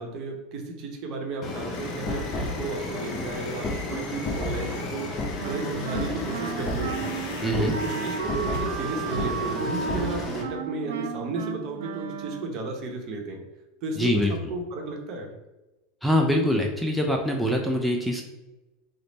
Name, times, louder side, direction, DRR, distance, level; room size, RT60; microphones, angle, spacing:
voice 1, 0.0-7.0 7.6-13.4 13.8-15.3, right 3 dB, 50° right, 2 dB, 0.8 m, -33 dB
sound 1, 1.4-10.4, left 2 dB, 35° left, 0.8 m, -32 dB
sound 2, 1.7-8.6, left 3 dB, 75° left, 0.6 m, -43 dB
Wind instrument woodwind instrument, 5.4-12.7, right 7 dB, 85° right, 0.3 m, -34 dB
voice 2, 7.4-7.7 14.0-14.3 16.0-18.2, equal, ahead, 1 dB, 0.4 m, -24 dB
3.3 x 2.0 x 3.9 m, 1.1 s
supercardioid pair, 120°, 0 cm